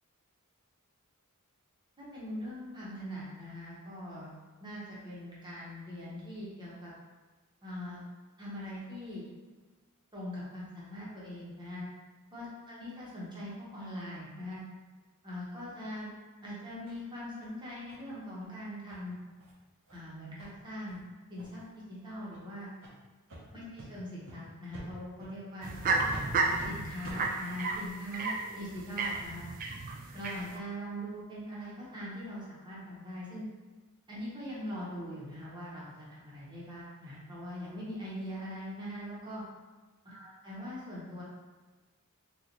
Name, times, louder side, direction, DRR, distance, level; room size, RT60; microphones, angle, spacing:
voice 1, 2.0-4.3 4.6-6.9 7.6-8.0 8.4-9.3 10.1-11.8 12.3-14.6 15.2-16.1 16.4-19.2 19.9-21.0 21.3-21.6 21.9-22.7 23.5-25.7 26.3-29.4 30.1-33.4 34.1-39.4 40.0-41.2, equal, 20° right, -7 dB, 1.0 m, -41 dB
sound 1, 16.9-17.0 17.4-17.5 17.9-18.0 18.4-18.5 18.9-19.0 19.4-19.5 19.9-20.0 20.4-20.5 20.9-21.0 21.4-21.7 22.3-22.4 22.8-22.9 23.3-23.4 23.8-23.9 24.3-24.4 24.7-24.9 25.2-25.3 25.7-25.8 26.1-26.2 26.6-26.7 27.0-27.2, right 1 dB, 60° right, 0.7 m, -47 dB
sound 2, 25.6-30.6, right 3 dB, 40° right, 0.3 m, -32 dB
3.8 x 2.4 x 2.9 m, 1.3 s
head